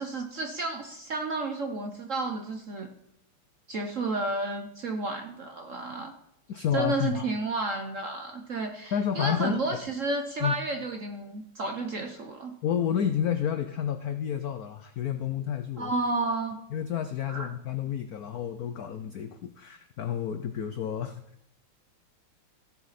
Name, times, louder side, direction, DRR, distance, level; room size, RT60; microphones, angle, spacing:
voice 1, 0.0-2.9 3.7-6.1 6.7-12.5 15.8-16.6 17.3-17.5, right 2 dB, 55° right, 5 dB, 0.8 m, -31 dB
voice 2, 6.5-7.3 8.9-9.6 10.4-10.6 12.6-15.9 16.7-21.2, left 9 dB, 90° left, 9 dB, 0.8 m, -30 dB
15.5 x 7.2 x 4.1 m, 0.74 s
omnidirectional pair, 2.4 m